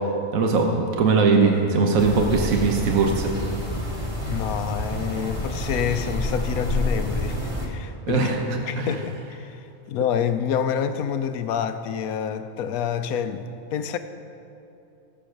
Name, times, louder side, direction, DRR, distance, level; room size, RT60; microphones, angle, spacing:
voice 1, 0.3-3.3 8.1-8.4 8.8-8.9, right 4 dB, 75° right, 2 dB, 1.4 m, -20 dB
sound 1, 2.0-7.7, left 1 dB, 20° right, 2.4 m, -29 dB
voice 2, 4.2-9.6 9.9-14.0, left 7 dB, 90° left, 10 dB, 1.1 m, -28 dB
15.5 x 7.0 x 6.5 m, 2.8 s
omnidirectional pair, 1.5 m